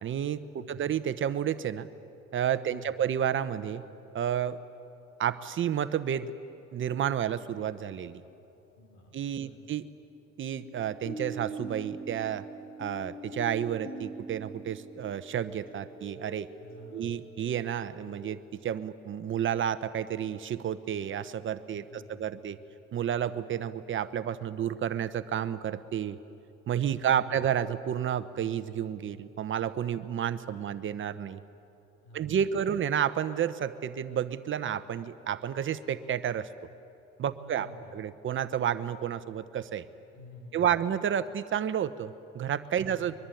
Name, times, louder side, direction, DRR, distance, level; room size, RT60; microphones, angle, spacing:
voice 1, 0.0-1.9 2.3-3.8 4.1-4.6 5.2-6.3 6.7-8.2 9.1-9.8 10.4-12.4 12.8-16.5 16.9-22.6 22.9-26.2 26.7-31.4 32.1-36.5 37.2-39.8 40.5-43.1, right 9 dB, 40° right, 12 dB, 1.0 m, -31 dB
voice 2, 2.7-3.1 8.8-9.2 9.4-9.6 16.6-17.2 21.9-22.5 26.9-27.4 32.0-32.6 37.4-37.9 40.1-40.7 42.8-43.1, left 1 dB, 80° left, 3 dB, 5.2 m, -50 dB
sound 1, 7.8-8.0 10.6-18.4, right 2 dB, 30° left, 4.5 m, -43 dB
23.0 x 22.5 x 9.2 m, 2.7 s
cardioid pair, 110°, 30 cm